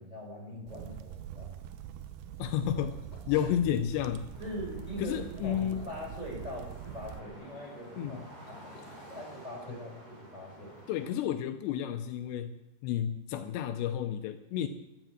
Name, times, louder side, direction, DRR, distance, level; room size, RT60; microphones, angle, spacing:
voice 1, 0.0-1.7 3.3-3.5 4.4-8.2 9.1-10.8, equal, 10° right, -4 dB, 6.2 m, -42 dB
sound 1, 0.7-7.2, right 10 dB, 80° right, 2.2 m, -44 dB
voice 2, 2.4-3.0 3.3-4.3 5.0-5.9 8.0-8.2 9.7-9.8 10.9-12.6 12.8-14.7, left 10 dB, 80° left, 9 dB, 2.8 m, -31 dB
sound 2, 2.6-3.5 5.3-6.2 8.3-9.4, left 3 dB, 55° left, 4.0 m, -53 dB
sound 3, 4.3-11.1, equal, 30° right, 6.4 m, -51 dB
16.0 x 12.0 x 6.1 m, 0.94 s
omnidirectional pair, 5.3 m